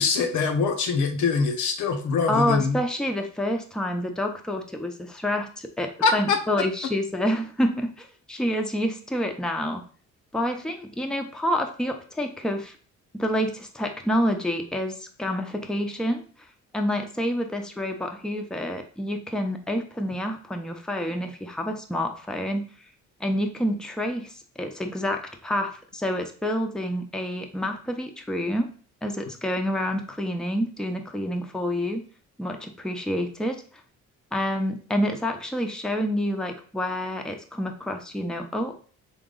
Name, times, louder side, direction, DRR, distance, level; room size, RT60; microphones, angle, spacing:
voice 1, 0.0-2.8 6.0-6.4, left 4 dB, 80° left, 5 dB, 0.9 m, -23 dB
voice 2, 2.3-9.8 10.3-12.7 13.1-16.2 16.7-22.7 23.2-28.7 29.0-32.0 32.4-33.6 34.3-38.7, equal, ahead, 4 dB, 0.7 m, -28 dB
3.9 x 2.9 x 3.8 m, 0.43 s
cardioid pair, 90°, 30 cm